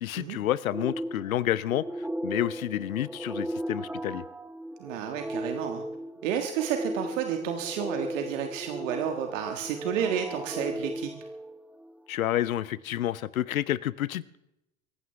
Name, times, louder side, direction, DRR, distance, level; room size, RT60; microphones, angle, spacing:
voice 1, 0.0-1.8 2.2-4.2 12.1-14.4, left 12 dB, 80° left, 20 dB, 0.7 m, -29 dB
sound 1, 0.7-12.0, right 1 dB, 5° right, 0.5 m, -36 dB
voice 2, 4.8-5.9 6.2-11.1, right 8 dB, 60° right, 5 dB, 1.7 m, -31 dB
24.0 x 15.0 x 3.4 m, 0.87 s
figure-of-eight pair, 80°, 42 cm